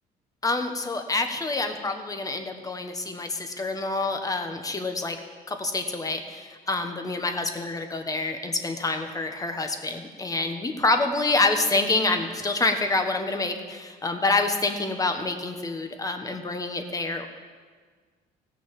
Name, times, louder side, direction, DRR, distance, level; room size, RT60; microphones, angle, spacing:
voice 1, 0.4-5.2 5.5-17.3, left 3 dB, 20° left, 6 dB, 1.2 m, -27 dB
16.0 x 6.1 x 7.5 m, 1.5 s
cardioid pair, 110°, 17 cm